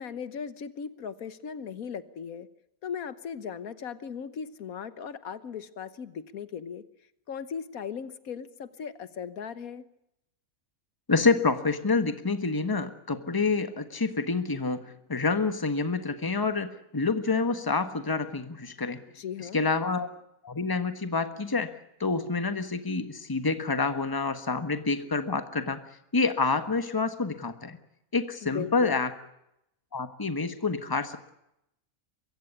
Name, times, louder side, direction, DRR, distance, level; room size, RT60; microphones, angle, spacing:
voice 1, 0.0-2.5 2.8-6.8 7.3-9.9 19.1-19.6 28.4-29.0, left 7 dB, 80° left, 14 dB, 1.5 m, -38 dB
voice 2, 11.1-19.0 19.5-20.1 20.4-21.7 22.0-25.8 26.1-27.8 28.1-29.1 29.9-31.3, left 4 dB, 15° left, 9 dB, 1.3 m, -27 dB
23.5 x 15.5 x 9.8 m, 0.83 s
omnidirectional pair, 1.5 m